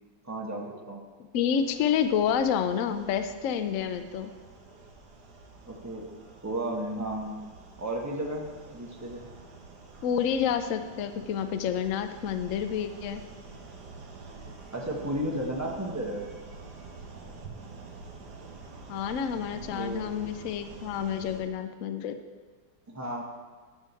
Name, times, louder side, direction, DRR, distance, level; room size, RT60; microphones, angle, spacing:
voice 1, 0.2-1.0 5.7-6.1 6.4-7.4 7.8-9.3 14.7-16.3 19.5-20.1 22.9-23.2, right 1 dB, 15° right, 0 dB, 0.8 m, -33 dB
voice 2, 1.3-4.3 10.0-13.2 18.9-22.2, left 8 dB, 85° left, 9 dB, 0.7 m, -29 dB
sound 1, 1.6-21.4, right 3 dB, 60° right, 1.7 m, -47 dB
11.0 x 4.7 x 6.9 m, 1.4 s
omnidirectional pair, 2.1 m